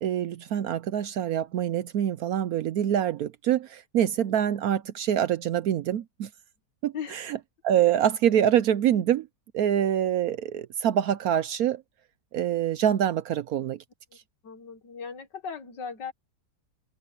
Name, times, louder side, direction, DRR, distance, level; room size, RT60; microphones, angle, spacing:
voice 1, 0.0-6.3 6.8-7.4 7.6-9.3 9.5-11.8 12.3-13.8, right 10 dB, 70° right, 1.0 m, -25 dB
voice 2, 14.4-16.1, left 6 dB, 85° left, 2.3 m, -37 dB
omnidirectional pair, 1.8 m